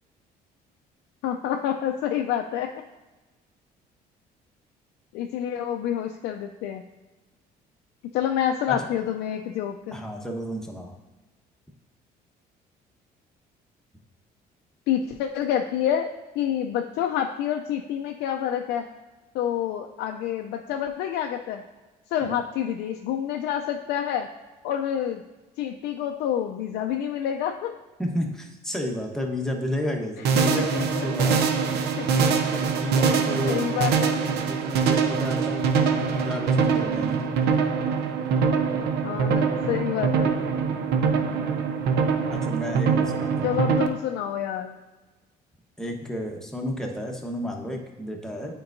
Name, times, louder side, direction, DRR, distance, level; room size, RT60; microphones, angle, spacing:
voice 1, 1.2-2.7 5.1-6.8 8.1-10.0 14.9-18.9 19.3-21.6 22.1-24.3 24.6-25.2 25.6-27.7 30.5-31.1 32.0-32.2 33.3-34.2 39.0-40.3 43.4-44.7, left 9 dB, 85° left, 3 dB, 0.4 m, -28 dB
voice 2, 9.9-10.9 22.2-22.4 28.0-31.4 32.6-33.6 34.5-37.3 42.3-43.6 45.8-48.6, left 1 dB, 5° left, 1 dB, 1.0 m, -31 dB
sound 1, 30.2-43.9, right 5 dB, 80° right, 0.6 m, -23 dB
8.7 x 4.5 x 2.6 m, 1.2 s
cardioid pair, 110°, 17 cm